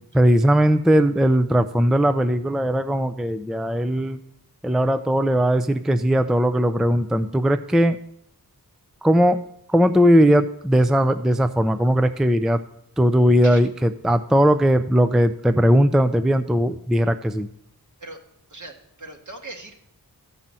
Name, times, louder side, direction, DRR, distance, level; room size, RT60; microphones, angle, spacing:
voice 1, 0.1-4.2 4.6-8.0 9.0-9.4 9.7-12.6 13.0-17.5, equal, ahead, 10 dB, 0.4 m, -19 dB
voice 2, 18.5-19.8, right 2 dB, 50° right, 2 dB, 1.9 m, -39 dB
13.5 x 5.5 x 7.5 m, 0.74 s
wide cardioid pair, 80°, 37 cm